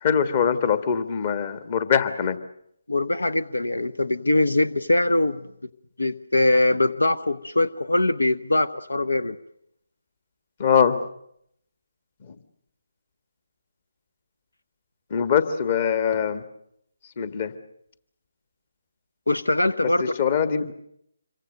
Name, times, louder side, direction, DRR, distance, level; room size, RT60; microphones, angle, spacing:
voice 1, 0.0-2.4 10.6-11.0 15.1-16.4 17.2-17.5 20.0-20.7, left 7 dB, 35° left, 12 dB, 1.7 m, -22 dB
voice 2, 2.9-5.4 6.0-9.4 19.3-20.1, left 2 dB, 80° left, 15 dB, 1.0 m, -22 dB
26.5 x 23.5 x 6.6 m, 0.72 s
figure-of-eight pair, 150°, 0 cm